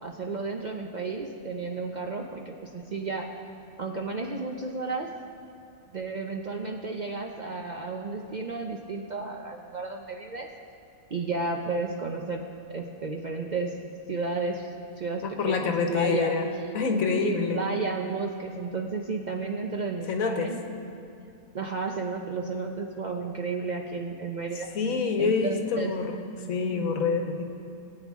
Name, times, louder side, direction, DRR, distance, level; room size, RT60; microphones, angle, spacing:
voice 1, 0.0-3.3 3.8-5.1 5.9-10.5 11.1-12.4 12.7-13.8 14.1-14.7 15.0-16.3 17.1-20.6 21.5-24.7 25.2-25.9 26.7-26.9, right 4 dB, 50° right, 2 dB, 0.5 m, -32 dB
voice 2, 15.2-16.5 16.7-17.6 20.1-20.5 24.7-26.2 26.5-27.4, left 5 dB, 85° left, 5 dB, 1.4 m, -26 dB
19.0 x 8.8 x 3.6 m, 2.6 s
omnidirectional pair, 1.4 m